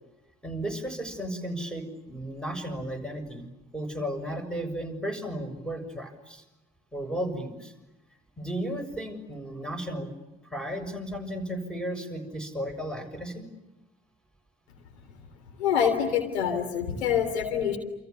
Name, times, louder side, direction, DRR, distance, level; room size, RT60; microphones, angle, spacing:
voice 1, 0.4-3.5 3.7-6.4 6.9-7.7 8.4-10.1 10.5-13.4, right 1 dB, ahead, 7 dB, 7.0 m, -34 dB
voice 2, 15.6-17.8, left 8 dB, 80° left, 6 dB, 3.6 m, -26 dB
29.0 x 28.0 x 7.1 m, 0.97 s
figure-of-eight pair, 50°, 32 cm